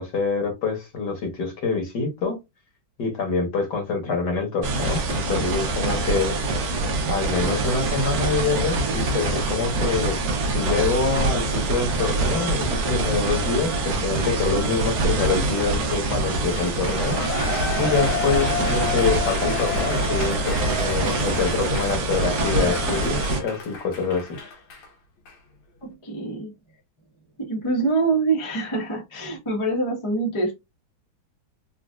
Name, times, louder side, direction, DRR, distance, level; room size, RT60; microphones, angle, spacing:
voice 1, 0.0-2.4 3.0-6.4 7.1-10.2 10.5-17.2 17.8-24.3, left 4 dB, 60° left, 1.6 m, -26 dB
sound 1, 4.6-23.4, right 2 dB, 60° right, 1.3 m, -25 dB
Shout / Cheering, 16.5-24.9 25.3-25.4, left 4 dB, 85° left, 1.8 m, -30 dB
voice 2, 25.8-26.5 27.4-30.5, right 3 dB, 20° left, 0.7 m, -25 dB
4.2 x 2.4 x 2.3 m
omnidirectional pair, 2.2 m